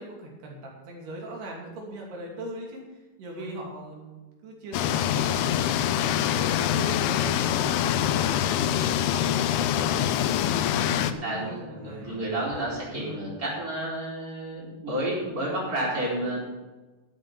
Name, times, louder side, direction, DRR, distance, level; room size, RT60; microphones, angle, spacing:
voice 1, 0.0-9.9 11.1-12.2 15.9-16.4, right 1 dB, 80° right, -2 dB, 4.9 m, -41 dB
sound 1, 4.7-11.1, left 10 dB, 85° left, 2.7 m, -25 dB
sound 2, 9.1-9.3 9.6-9.9 10.2-10.8 11.2-11.5 11.8-12.2 12.5-13.2, left 4 dB, 65° left, 5.2 m, -44 dB
voice 2, 10.8-16.4, right 1 dB, 20° right, -5 dB, 4.5 m, -31 dB
12.0 x 7.8 x 7.0 m, 1.2 s
omnidirectional pair, 4.6 m